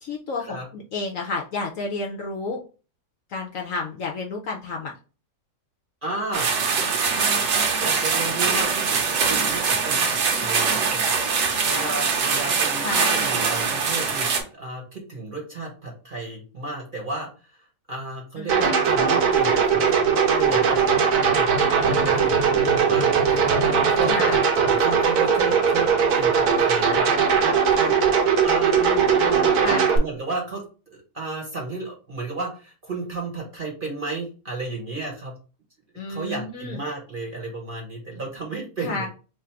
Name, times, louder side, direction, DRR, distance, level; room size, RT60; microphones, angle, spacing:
voice 1, 0.0-2.6 3.3-4.9 12.8-13.3 18.4-18.8 24.0-24.4 29.6-29.9 36.0-36.8 38.8-39.1, left 3 dB, 65° left, 1 dB, 0.8 m, -31 dB
voice 2, 6.0-6.5 7.1-11.1 11.6-20.8 21.3-21.5 21.8-23.1 23.9-30.6 31.1-35.3 36.1-39.1, right 3 dB, 40° right, -1 dB, 0.9 m, -33 dB
sound 1, 6.3-14.4, right 5 dB, 90° right, 1.5 m, -23 dB
sound 2, 18.5-30.0, right 6 dB, 70° right, 1.2 m, -20 dB
3.2 x 2.5 x 4.3 m, 0.35 s
omnidirectional pair, 1.8 m